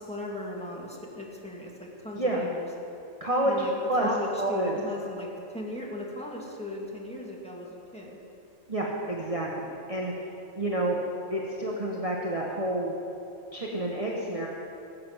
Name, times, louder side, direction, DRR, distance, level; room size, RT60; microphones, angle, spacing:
voice 1, 0.0-2.7 3.4-3.7 4.0-8.2, left 1 dB, 5° left, -3 dB, 2.1 m, -37 dB
voice 2, 2.1-2.5 3.2-3.6 3.9-4.1 4.4-4.8 8.7-10.3 10.5-11.0 11.3-12.9 13.5-14.5, right 1 dB, 25° right, -3 dB, 1.3 m, -29 dB
17.5 x 7.6 x 7.3 m, 2.8 s
omnidirectional pair, 1.4 m